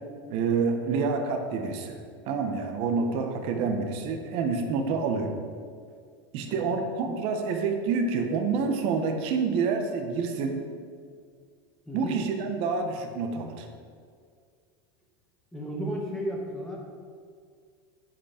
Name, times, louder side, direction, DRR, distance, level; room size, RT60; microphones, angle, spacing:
voice 1, 0.3-2.0 2.3-5.3 6.3-10.6 11.9-13.7, right 5 dB, 50° right, 5 dB, 1.1 m, -28 dB
voice 2, 11.9-12.2 15.5-16.8, equal, 5° left, -2 dB, 1.4 m, -33 dB
9.4 x 5.7 x 5.0 m, 2.1 s
supercardioid pair, 140°, 13 cm